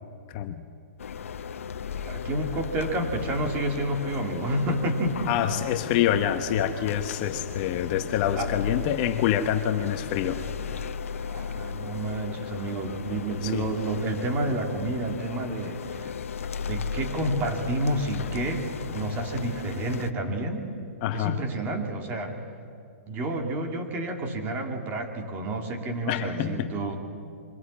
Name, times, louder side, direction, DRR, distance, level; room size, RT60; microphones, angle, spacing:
voice 1, 0.3-0.6 5.3-10.4 13.4-13.7 21.0-21.4 26.1-26.7, left 10 dB, 40° left, 7 dB, 1.1 m, -26 dB
sound 1, 1.0-20.1, left 6 dB, 80° left, 1.0 m, -36 dB
voice 2, 2.0-5.5 8.3-8.5 11.2-16.1 16.6-20.7 21.1-22.3 23.1-27.0, right 1 dB, 25° right, 3 dB, 2.7 m, -30 dB
23.5 x 16.5 x 8.7 m, 2.3 s
hypercardioid pair, 145°, 7 cm